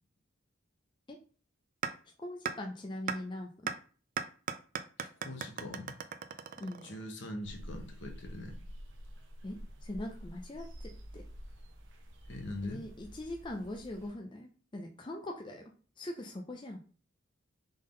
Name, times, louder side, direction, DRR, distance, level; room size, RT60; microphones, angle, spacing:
sound 1, 1.8-1.9 2.4-2.5 3.1-3.2 3.7-3.8 4.2-7.1, right 7 dB, 45° right, 0.4 m, -36 dB
voice 1, 2.2-3.5 6.6-6.9 9.4-11.2 12.6-15.6 16.0-16.8, left 1 dB, 25° left, 2 dB, 0.5 m, -41 dB
voice 2, 5.0-5.9 6.8-8.6 12.3-12.8, left 1 dB, 65° left, 4 dB, 1.0 m, -42 dB
sound 2, 7.4-14.1, equal, 70° right, 0.8 m, -48 dB
3.7 x 3.7 x 3.8 m, 0.40 s
head